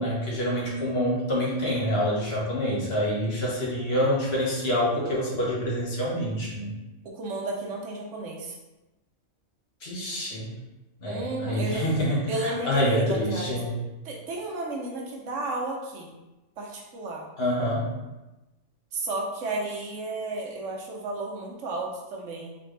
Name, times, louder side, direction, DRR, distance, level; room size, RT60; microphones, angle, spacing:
voice 1, 0.0-6.7 9.8-10.5 11.0-13.7 17.4-17.9, equal, 55° left, -5 dB, 1.4 m, -26 dB
voice 2, 7.0-8.6 11.1-11.8 12.3-13.5 14.0-16.2 16.6-17.3 18.9-22.6, right 2 dB, 75° right, -1 dB, 1.2 m, -33 dB
4.2 x 3.5 x 3.2 m, 1.0 s
omnidirectional pair, 1.3 m